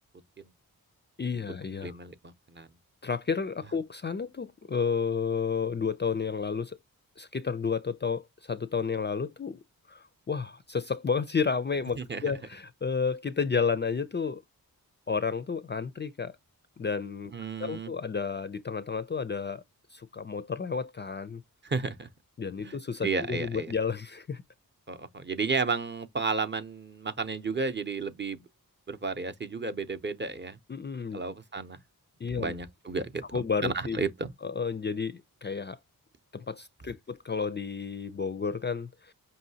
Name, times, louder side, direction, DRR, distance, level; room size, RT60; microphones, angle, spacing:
voice 1, 1.2-2.0 3.0-6.8 7.2-9.6 9.9-14.4 15.1-16.4 16.8-17.3 17.6-19.6 19.9-21.4 22.4-24.4 30.7-31.2 32.2-32.5 33.3-34.0 34.4-35.8 36.3-39.1, left 5 dB, 30° left, 0.4 m, -31 dB
voice 2, 1.8-2.7 12.0-12.2 17.3-17.9 21.6-22.1 22.6-22.8 23.0-23.7 24.9-28.4 28.9-30.6 31.1-31.8 32.3-34.3, right 4 dB, 30° right, 0.6 m, -32 dB
5.5 x 2.7 x 2.7 m
wide cardioid pair, 70°, 36 cm